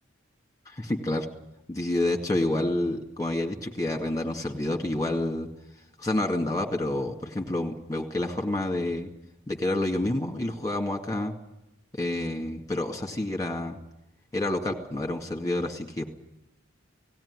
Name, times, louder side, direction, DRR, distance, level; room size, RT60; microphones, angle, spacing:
voice 1, 0.7-1.3 1.7-5.5 6.0-9.1 9.5-11.3 11.9-13.8 14.3-16.1, left 1 dB, 15° left, 3 dB, 2.2 m, -28 dB
18.0 x 17.0 x 9.8 m, 0.88 s
head